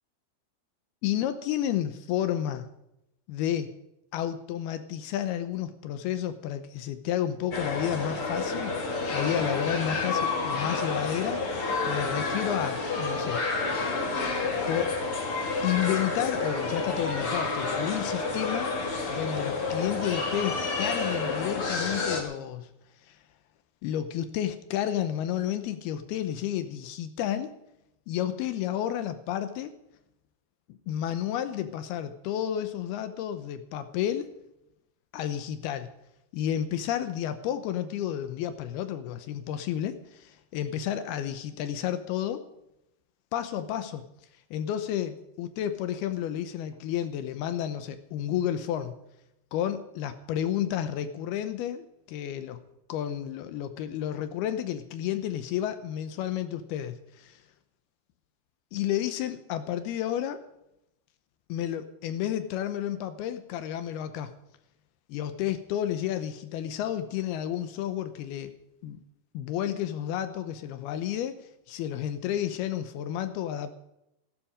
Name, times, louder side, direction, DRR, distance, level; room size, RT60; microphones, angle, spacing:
voice 1, 1.0-2.7 3.3-3.7 4.1-13.4 14.7-15.0 15.6-18.7 19.1-22.7 23.1-23.2 23.8-27.5 28.1-29.7 30.9-34.3 35.1-35.9 36.3-42.4 43.3-44.1 44.5-49.0 49.5-52.6 52.9-57.3 58.7-60.4 61.5-64.3 65.1-68.6 68.8-69.0 69.3-71.4 71.7-73.7, left 11 dB, 75° left, 10 dB, 2.6 m, -31 dB
sound 1, 7.5-22.2, left 3 dB, 40° left, 2.7 m, -29 dB
16.0 x 14.5 x 5.1 m, 0.85 s
omnidirectional pair, 4.8 m